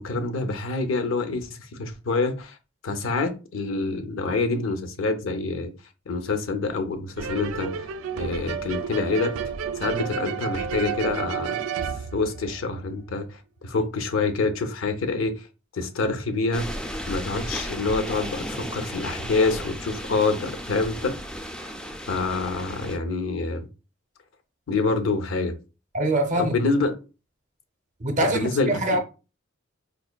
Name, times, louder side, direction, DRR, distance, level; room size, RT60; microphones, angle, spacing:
voice 1, 0.0-2.6 2.8-5.7 6.1-7.9 8.2-9.4 9.8-11.6 11.9-15.5 15.7-16.7 17.1-21.2 22.1-23.7 24.7-25.6 26.4-26.9 28.2-29.0, left 3 dB, 80° left, 0.6 m, -26 dB
sound 1, 7.2-12.9, right 6 dB, 85° right, 0.3 m, -31 dB
sound 2, 16.5-23.0, equal, 5° left, 0.3 m, -34 dB
voice 2, 25.9-26.5 28.0-29.0, right 1 dB, 40° right, 0.6 m, -24 dB
4.0 x 2.5 x 2.2 m
head